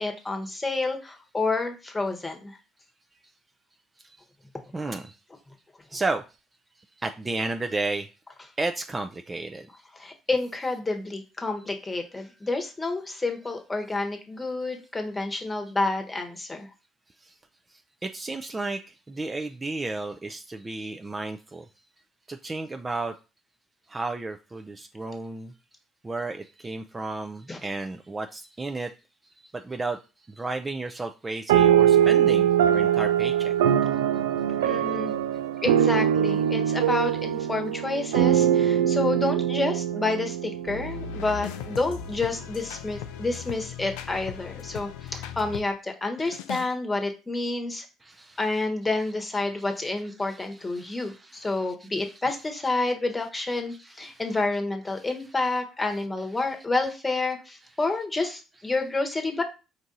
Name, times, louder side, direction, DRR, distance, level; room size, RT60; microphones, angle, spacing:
voice 1, 0.0-2.6 4.8-4.9 9.9-16.7 27.5-27.6 34.6-35.1 35.6-47.8 48.4-59.4, left 3 dB, 20° left, 4 dB, 1.1 m, -29 dB
voice 2, 4.7-5.1 5.9-6.2 7.0-8.1 8.6-9.7 17.2-17.3 18.0-18.8 19.1-21.6 22.3-23.1 23.9-25.5 26.0-28.9 29.5-30.0 30.3-33.5 48.0-48.7 49.0-52.9 53.5-54.5 54.9-55.6 55.9-57.3 57.6-58.0 58.3-58.8 59.1-59.2, right 3 dB, 25° right, 6 dB, 0.4 m, -34 dB
sound 1, 31.5-41.2, right 10 dB, 85° right, 0.3 m, -22 dB
sound 2, 40.7-45.7 46.2-46.7, left 9 dB, 80° left, 0.4 m, -38 dB
4.7 x 2.6 x 3.9 m, 0.30 s
hypercardioid pair, 60°, 0 cm